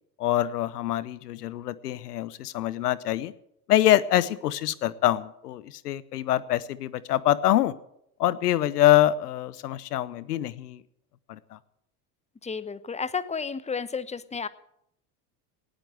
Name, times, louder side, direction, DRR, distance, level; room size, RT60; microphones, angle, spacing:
voice 1, 0.2-3.3 3.7-7.7 8.2-10.8 11.3-11.6, left 13 dB, 90° left, 19 dB, 0.8 m, -25 dB
voice 2, 12.4-14.5, left 5 dB, 15° left, 15 dB, 1.0 m, -32 dB
18.5 x 8.9 x 7.7 m, 0.77 s
hypercardioid pair, 75°, 46 cm